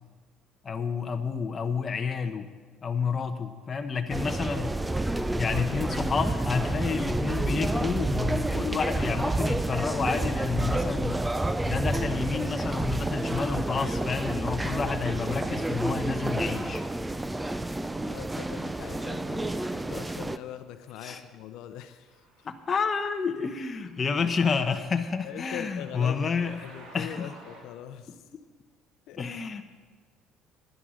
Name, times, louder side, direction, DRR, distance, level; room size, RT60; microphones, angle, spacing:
voice 1, 0.6-2.5 2.8-4.8 5.4-11.2 11.6-16.8 21.0-21.2 22.4-26.6 26.9-27.3 29.2-29.6, left 5 dB, 25° left, 6 dB, 0.9 m, -30 dB
sound 1, 4.1-20.4, right 2 dB, 10° right, 0.4 m, -29 dB
voice 2, 18.0-22.5 25.2-28.3 29.1-29.4, left 10 dB, 70° left, 10 dB, 0.7 m, -42 dB
sound 2, 22.1-27.6, right 2 dB, 75° right, 3.8 m, -54 dB
11.0 x 10.5 x 6.4 m, 1.5 s
cardioid pair, 140°, 0 cm